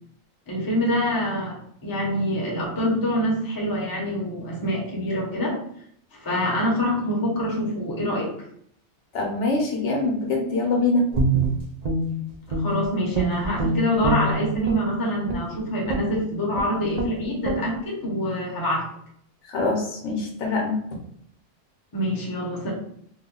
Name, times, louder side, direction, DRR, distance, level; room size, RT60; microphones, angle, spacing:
voice 1, 0.5-5.6 6.1-8.3 12.5-18.9 21.9-22.7, equal, 20° left, -2 dB, 0.6 m, -25 dB
voice 2, 9.1-11.1 19.5-20.8, left 3 dB, 65° left, 0 dB, 1.0 m, -24 dB
Guitar, 11.1-12.8 13.1-14.9 15.3-15.5 15.9-16.2 16.5-16.7 16.9-17.1 17.4-17.6, right 3 dB, 50° right, 0.5 m, -25 dB
3.0 x 2.1 x 3.7 m, 0.67 s
omnidirectional pair, 1.3 m